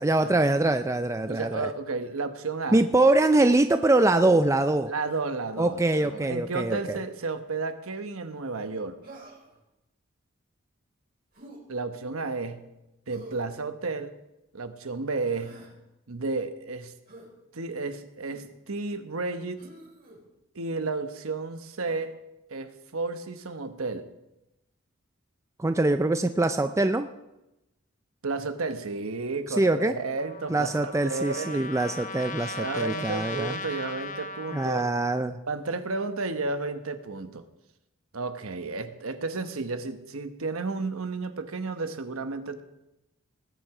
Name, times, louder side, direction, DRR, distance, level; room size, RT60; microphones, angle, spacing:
voice 1, 0.0-1.7 2.7-4.9 5.6-7.0 25.6-27.1 29.6-29.9 30.5-33.5 34.5-35.4, right 2 dB, 15° right, 9 dB, 0.4 m, -23 dB
voice 2, 1.3-2.8 4.9-9.0 11.7-12.6 13.1-14.1 14.5-15.6 16.1-16.9 17.5-19.6 20.5-22.2 22.5-24.1 28.2-31.6 32.5-34.9 35.5-37.4 38.1-42.6, right 3 dB, 80° right, 9 dB, 1.1 m, -32 dB
Human voice, 9.0-9.6 11.3-11.6 13.1-13.5 15.1-15.7 17.1-17.3 18.2-18.5 19.6-20.2 21.8-22.1, right 2 dB, 45° right, 5.2 m, -48 dB
Trumpet, 30.2-34.9, left 4 dB, 35° left, 0.8 m, -38 dB
20.0 x 9.0 x 4.8 m, 0.95 s
head